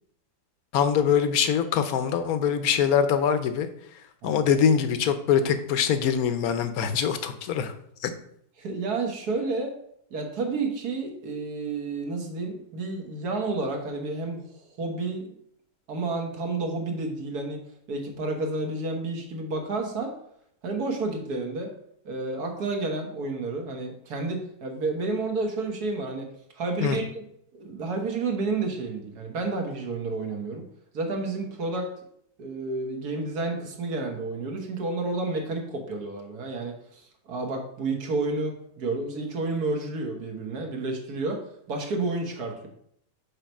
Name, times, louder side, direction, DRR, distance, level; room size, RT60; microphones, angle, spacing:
voice 1, 0.7-3.7 4.2-7.7 8.0-8.1 26.8-27.0, left 7 dB, 65° left, 10 dB, 1.1 m, -23 dB
voice 2, 8.6-9.7 10.1-15.3 15.9-17.6 17.9-20.1 20.6-21.7 22.0-26.3 26.5-27.2 27.5-30.6 30.9-31.9 32.4-37.0 37.3-42.7, right 3 dB, 70° right, 2 dB, 1.8 m, -30 dB
5.7 x 4.6 x 5.4 m, 0.69 s
omnidirectional pair, 1.8 m